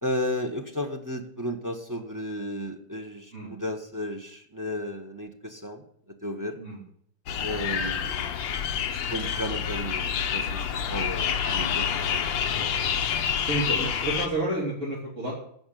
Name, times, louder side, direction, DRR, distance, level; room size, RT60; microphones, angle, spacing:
voice 1, 0.0-6.6 7.4-8.4 8.9-12.2 12.5-13.0, equal, 15° right, 2 dB, 0.8 m, -34 dB
sound 1, 7.3-14.3, left 8 dB, 65° left, 1.6 m, -28 dB
voice 2, 7.3-7.6 13.4-15.3, right 1 dB, 35° right, -6 dB, 3.3 m, -30 dB
14.0 x 5.4 x 9.1 m, 0.66 s
omnidirectional pair, 2.4 m